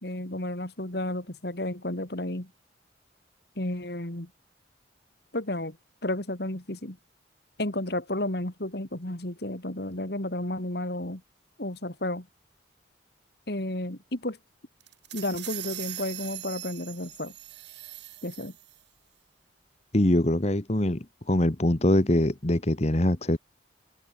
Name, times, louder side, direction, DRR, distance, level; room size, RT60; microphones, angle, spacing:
voice 1, 0.0-2.5 3.6-4.3 5.3-5.8 6.0-7.0 7.6-11.2 11.6-12.3 13.5-14.4 15.1-17.3 18.2-18.5, left 1 dB, 55° left, 2.7 m, -32 dB
sound 1, 14.8-18.8, right 14 dB, 60° right, 3.9 m, -41 dB
voice 2, 19.9-23.4, left 1 dB, 35° left, 1.3 m, -23 dB
head